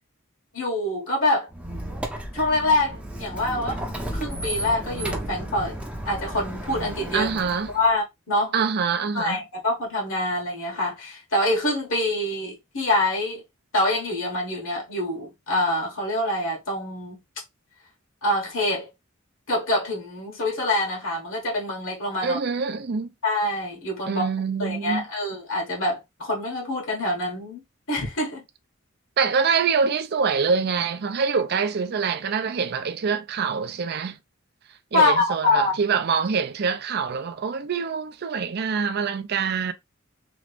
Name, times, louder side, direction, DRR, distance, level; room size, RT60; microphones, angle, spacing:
voice 1, 0.5-1.5 2.3-5.8 6.0-7.3 7.7-8.5 9.1-13.4 13.7-17.2 18.2-18.9 19.5-22.4 23.2-24.3 24.6-27.6 27.9-28.4 34.9-35.7, left 1 dB, 70° left, 1.3 m, -25 dB
Squeak, 1.5-7.9, right 1 dB, 5° right, 0.6 m, -33 dB
voice 2, 7.1-7.7 8.5-9.4 22.2-23.1 24.1-25.0 29.2-34.2 34.9-39.7, right 5 dB, 50° right, 0.4 m, -25 dB
3.1 x 2.5 x 3.3 m
head